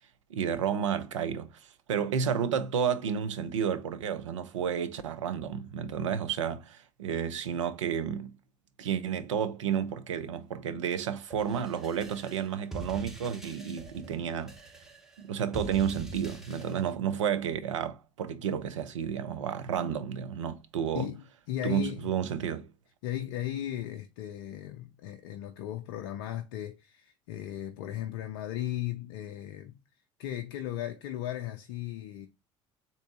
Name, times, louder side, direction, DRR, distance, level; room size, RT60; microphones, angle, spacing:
voice 1, 0.3-1.6 1.9-8.3 8.8-14.5 15.2-21.1 21.6-22.7, right 8 dB, 80° right, 0.4 m, -31 dB
sound 1, 11.3-16.9, right 3 dB, 5° right, 0.9 m, -44 dB
voice 2, 20.9-22.1 23.0-29.7 30.2-32.3, left 12 dB, 65° left, 0.4 m, -36 dB
3.6 x 2.7 x 3.6 m
figure-of-eight pair, 60°, 16 cm